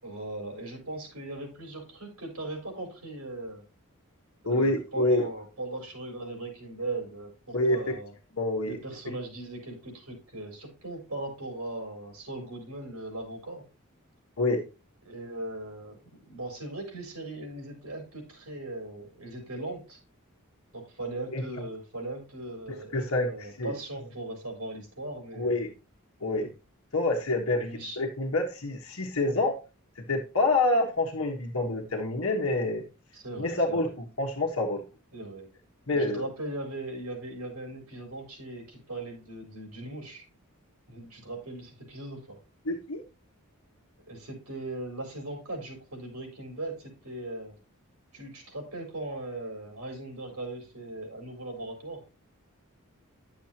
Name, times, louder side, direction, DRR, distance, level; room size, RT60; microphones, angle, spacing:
voice 1, 0.0-3.6 4.5-8.1 8.6-13.6 15.0-16.0 16.2-20.0 20.7-25.6 27.6-28.0 33.1-34.0 35.1-35.5 35.9-40.2 40.9-42.2 44.1-47.5 48.1-52.0, right 2 dB, 80° right, 1 dB, 4.6 m, -39 dB
voice 2, 4.4-5.3 7.5-7.8 8.3-8.8 14.4-14.6 21.3-21.4 22.9-23.3 23.6-23.7 25.3-25.7 26.2-26.5 26.9-29.6 30.0-32.9 33.4-34.8 35.9-36.3 42.6-43.0, left 2 dB, 70° left, 1 dB, 1.4 m, -27 dB
10.5 x 7.0 x 2.9 m, 0.30 s
head